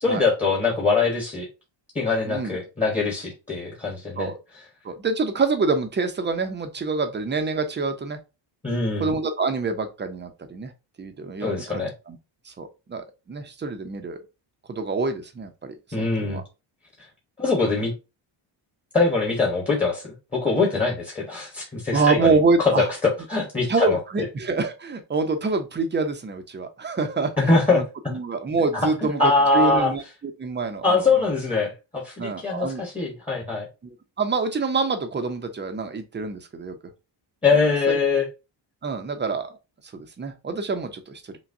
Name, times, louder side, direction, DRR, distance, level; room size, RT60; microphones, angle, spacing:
voice 1, 0.0-1.5 1.9-4.3 8.6-9.1 11.4-11.9 15.9-16.4 17.4-17.9 18.9-24.0 27.4-27.8 28.7-29.9 30.8-33.7 37.4-38.3, left 4 dB, 15° left, -2 dB, 1.1 m, -23 dB
voice 2, 2.3-2.6 4.2-4.4 4.8-8.2 9.0-10.7 11.0-12.2 12.5-14.2 14.7-16.4 21.9-22.9 23.7-27.8 28.1-30.0 30.4-31.3 32.2-32.8 34.2-36.8 37.9-38.0 38.8-39.6 39.9-41.2, right 4 dB, 25° right, 7 dB, 0.6 m, -26 dB
5.8 x 2.2 x 2.6 m, 0.27 s
cardioid pair, 140°, 47 cm